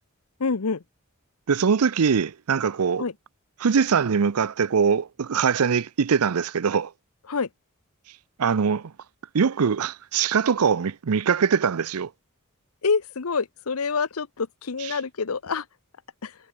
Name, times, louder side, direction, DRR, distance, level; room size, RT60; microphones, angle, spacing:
voice 1, 0.4-0.8 3.0-3.1 7.3-7.5 12.8-15.6 16.2-16.3, left 5 dB, 75° left, 0.8 m, -26 dB
voice 2, 1.5-3.0 3.6-6.9 8.4-8.9 9.3-12.1 14.8-14.9, right 6 dB, 90° right, 0.6 m, -22 dB
head